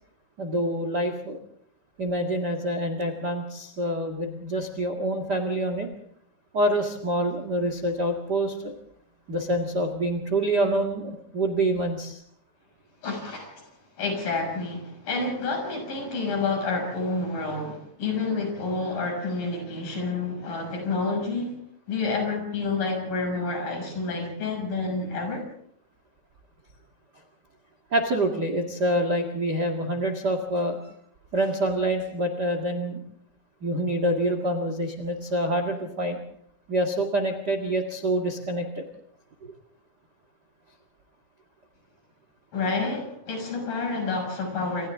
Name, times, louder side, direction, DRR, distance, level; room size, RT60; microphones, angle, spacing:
voice 1, 0.4-1.4 2.0-5.9 6.5-8.7 9.3-12.2 27.9-30.8 31.3-33.0 33.6-36.2 36.7-38.8, right 1 dB, 60° right, 5 dB, 1.0 m, -26 dB
voice 2, 13.0-13.7 14.0-21.5 21.9-25.5 42.5-44.9, left 3 dB, 50° left, 3 dB, 8.1 m, -29 dB
28.5 x 27.0 x 3.7 m, 0.67 s
omnidirectional pair, 5.3 m